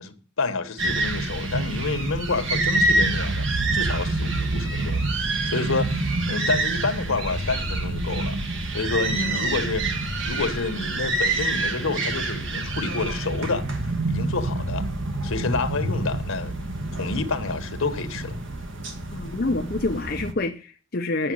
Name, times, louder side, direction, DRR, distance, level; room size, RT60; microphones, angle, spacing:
voice 1, 0.0-8.4 8.7-9.9 10.2-13.7 14.1-14.9 15.2-16.5 17.0-18.4, left 3 dB, 85° left, 1.2 m, -29 dB
sound 1, 0.8-20.3, right 2 dB, 65° right, 1.6 m, -27 dB
voice 2, 19.1-21.3, left 2 dB, 45° left, 0.7 m, -27 dB
9.0 x 7.0 x 7.6 m
head